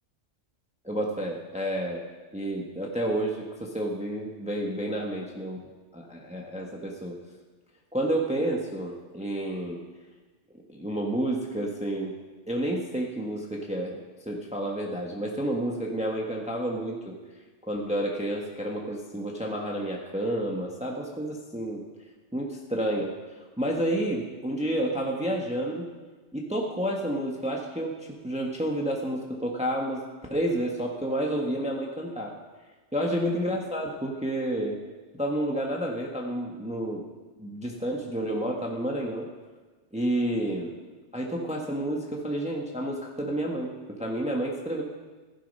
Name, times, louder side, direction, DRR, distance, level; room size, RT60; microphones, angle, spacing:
voice 1, 0.8-2.0 2.3-5.6 5.9-7.2 7.9-9.8 10.7-12.1 12.5-17.2 17.7-21.8 22.3-25.9 26.3-30.0 30.3-32.3 32.9-34.8 35.2-37.0 37.4-39.3 39.9-40.7 41.1-43.7 44.0-44.8, right 1 dB, 5° right, -1 dB, 1.3 m, -30 dB
15.5 x 11.5 x 5.5 m, 1.3 s
omnidirectional pair, 1.2 m